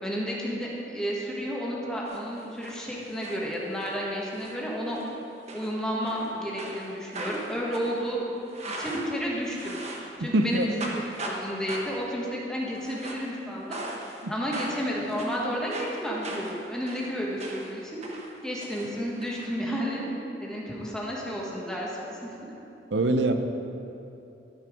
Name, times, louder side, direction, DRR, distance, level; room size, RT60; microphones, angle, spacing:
voice 1, 0.0-5.0 5.5-8.2 8.8-9.8 10.2-13.8 14.3-18.0 18.4-20.0 20.4-22.3, equal, 5° left, -4 dB, 1.5 m, -31 dB
sound 1, 2.1-2.8 3.1-3.9 4.3-4.6 4.9-5.1 5.5-6.3 6.6-10.2 10.4-11.4 11.7-12.1 12.7-13.3 13.7-14.3 14.5-17.8 18.0-19.5, right 2 dB, 40° right, 1.1 m, -39 dB
voice 2, 10.2-10.6 14.2-14.3 22.9-23.3, right 2 dB, 85° right, 7 dB, 0.7 m, -23 dB
13.0 x 5.9 x 5.0 m, 2.8 s
head